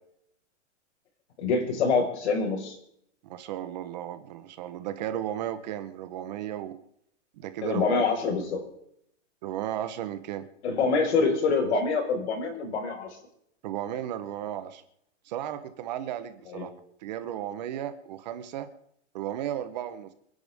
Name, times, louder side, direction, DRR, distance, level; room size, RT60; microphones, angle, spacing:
voice 1, 1.4-2.8 7.6-8.7 10.6-13.1 16.5-16.7, left 4 dB, 60° left, 3 dB, 5.3 m, -26 dB
voice 2, 3.2-6.8 7.4-8.2 9.4-10.5 11.7-11.8 13.6-14.8 15.2-16.7 17.0-18.7 19.1-20.1, right 11 dB, 35° right, 11 dB, 1.1 m, -34 dB
27.5 x 10.5 x 3.6 m, 0.72 s
supercardioid pair, 170°, 37 cm